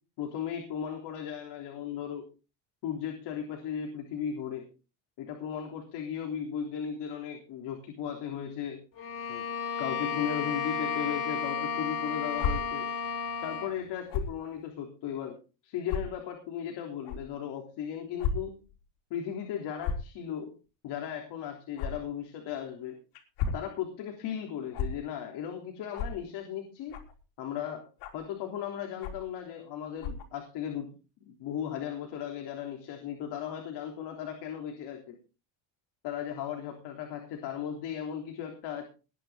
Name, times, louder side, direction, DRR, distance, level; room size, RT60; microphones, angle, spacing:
voice 1, 0.2-2.2 2.8-4.7 5.2-8.8 9.3-9.5 9.8-12.9 13.4-18.6 19.1-20.5 20.8-23.0 23.5-27.0 27.4-27.9 28.1-30.9 31.2-35.2 36.0-38.9, left 9 dB, 60° left, 2 dB, 3.6 m, -36 dB
Bowed string instrument, 9.0-13.8, left 6 dB, 45° left, 3.4 m, -33 dB
sound 1, 12.4-12.5 14.1-14.3 15.1-15.2 15.9-16.0 17.0-17.2 18.2-18.3 18.7-18.8 19.8-20.1 21.8-21.9 23.1-23.6 24.7-24.9 25.9-26.1 26.9-27.2 28.0-28.3 29.0-29.3 30.0-30.3, left 6 dB, 85° left, 3.8 m, -32 dB
20.0 x 10.0 x 3.9 m, 0.33 s
cardioid pair, 160°, 47 cm